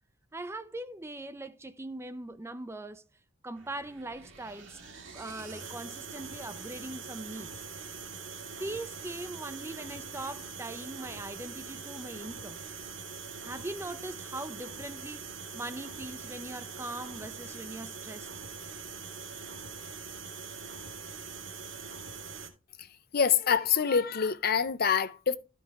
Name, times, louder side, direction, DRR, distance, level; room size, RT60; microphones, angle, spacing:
voice 1, 0.3-3.0 3.4-4.8 5.1-7.7 8.6-12.6 13.4-15.3 15.5-18.3, right 2 dB, 15° right, 0.5 m, -41 dB
sound 1, 3.6-22.5, right 5 dB, 75° right, 2.0 m, -43 dB
voice 2, 23.1-25.4, left 7 dB, 55° left, 0.6 m, -26 dB
12.5 x 5.5 x 3.4 m
head